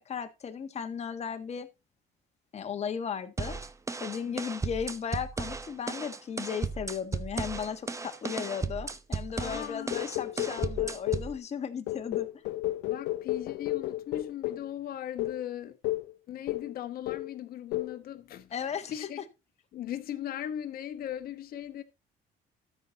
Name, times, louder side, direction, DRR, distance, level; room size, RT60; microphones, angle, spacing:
voice 1, 0.1-1.7 2.5-3.6 4.0-12.3 18.5-18.9, left 7 dB, 40° left, 1.5 m, -36 dB
sound 1, 3.4-11.4, right 4 dB, 20° right, 0.9 m, -35 dB
voice 2, 9.3-10.0 12.8-15.8 16.3-19.2 19.7-21.8, left 11 dB, 60° left, 1.2 m, -38 dB
sound 2, 9.9-11.3 11.9-14.7 15.2-15.4 15.8-16.1 16.5-16.8 17.1-17.4 17.7-18.0, left 16 dB, 90° left, 0.7 m, -32 dB
13.0 x 5.9 x 4.0 m
cardioid pair, 110°, 17 cm